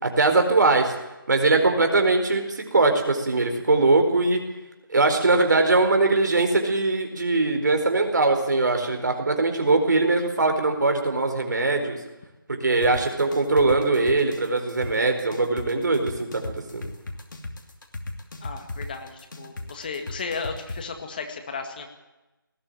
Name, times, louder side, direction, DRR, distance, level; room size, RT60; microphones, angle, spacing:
voice 1, 0.0-0.9 1.3-4.4 4.9-12.0 12.5-16.4 16.7-16.8, right 3 dB, 55° right, 5 dB, 4.4 m, -21 dB
sound 1, 12.8-20.8, left 2 dB, 60° left, 2.7 m, -35 dB
voice 2, 18.4-21.9, left 5 dB, 25° left, 5 dB, 2.0 m, -34 dB
19.5 x 14.5 x 9.1 m, 1.0 s
figure-of-eight pair, 170°, 12 cm